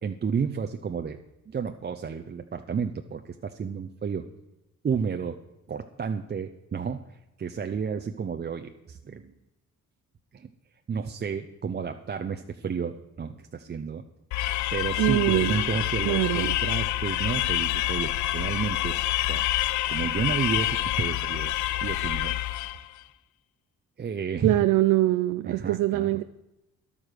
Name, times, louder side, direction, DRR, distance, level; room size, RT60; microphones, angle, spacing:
voice 1, 0.0-1.2 1.5-4.3 4.8-5.4 5.7-9.3 10.3-10.5 10.9-14.0 14.7-19.0 19.3-19.4 19.9-22.3 24.0-24.6 25.5-26.2, right 6 dB, 35° right, 6 dB, 0.7 m, -31 dB
sound 1, 14.3-22.9, left 15 dB, 70° left, 0.5 m, -27 dB
voice 2, 15.0-15.5 16.1-16.6 24.4-26.2, right 16 dB, 85° right, 12 dB, 0.5 m, -23 dB
11.5 x 8.9 x 6.6 m, 0.95 s
cardioid pair, 90°, 30 cm